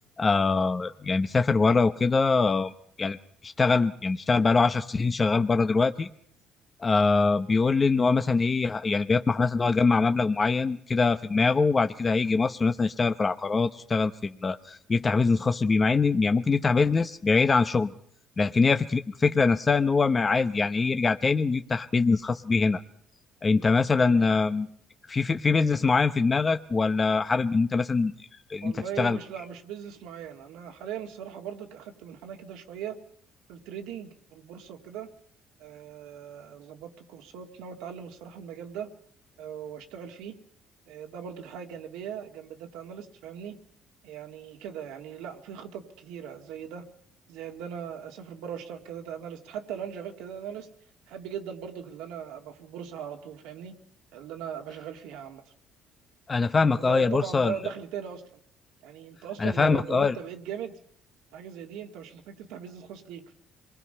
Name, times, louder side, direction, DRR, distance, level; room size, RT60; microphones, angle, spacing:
voice 1, 0.2-2.7 3.0-3.2 3.4-6.1 6.8-17.9 18.4-22.8 23.4-24.7 25.1-28.1 28.5-29.2 56.3-57.5 59.4-60.2, left 4 dB, 30° left, 8 dB, 0.8 m, -23 dB
voice 2, 24.0-24.4 28.6-33.0 33.5-35.1 35.6-38.9 39.4-40.4 40.9-43.6 44.0-46.8 47.3-50.7 51.1-53.7 54.1-55.4 56.8-58.2 58.8-60.8 61.3-63.4, right 8 dB, 85° right, 4 dB, 2.1 m, -39 dB
26.5 x 21.0 x 5.6 m, 0.63 s
supercardioid pair, 80°, 0 cm